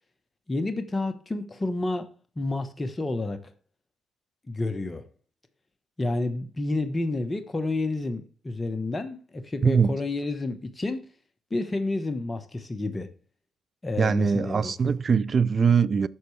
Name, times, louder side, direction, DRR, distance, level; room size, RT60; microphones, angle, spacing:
voice 1, 0.5-2.1 2.4-3.4 4.5-5.0 6.0-11.1 11.5-13.1 13.8-15.0, left 2 dB, 20° left, 1.1 m, -30 dB
voice 2, 9.6-10.0 14.0-16.1, right 6 dB, 45° right, 0.5 m, -22 dB
11.0 x 6.7 x 3.3 m
supercardioid pair, 70°, 0 cm